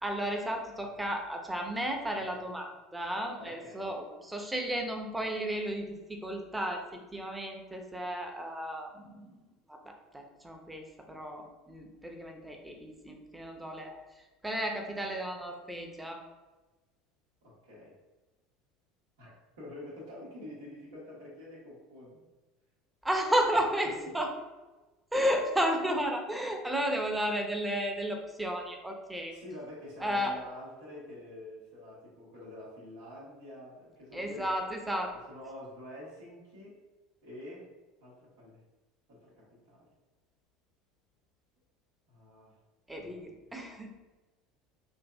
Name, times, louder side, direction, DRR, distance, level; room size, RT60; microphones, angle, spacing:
voice 1, 0.0-6.8 7.1-9.3 10.1-14.0 14.4-16.2 23.0-24.3 25.1-29.3 30.0-30.3 34.1-35.1 42.9-43.9, equal, 10° right, 2 dB, 0.7 m, -33 dB
voice 2, 3.3-3.9 17.4-17.9 19.2-19.3 19.6-22.2 23.8-23.9 25.1-25.2 29.3-34.5 35.3-36.8 37.2-37.7 38.0-38.6 39.1-39.9 42.1-42.6 43.0-43.5, left 1 dB, 80° right, -5 dB, 1.4 m, -47 dB
3.9 x 2.7 x 2.3 m, 1.2 s
hypercardioid pair, 80°, 0 cm